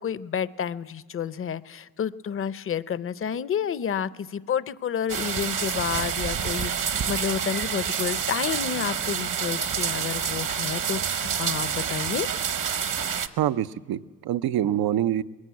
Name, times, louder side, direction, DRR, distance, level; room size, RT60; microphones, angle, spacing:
voice 1, 0.0-12.3, left 8 dB, 40° left, 16 dB, 0.6 m, -30 dB
sound 1, 5.1-13.3, right 7 dB, 60° right, 1.1 m, -28 dB
voice 2, 13.4-15.2, right 11 dB, 85° right, 15 dB, 0.6 m, -25 dB
21.0 x 16.0 x 9.4 m, 1.4 s
cardioid pair, 110°, 35 cm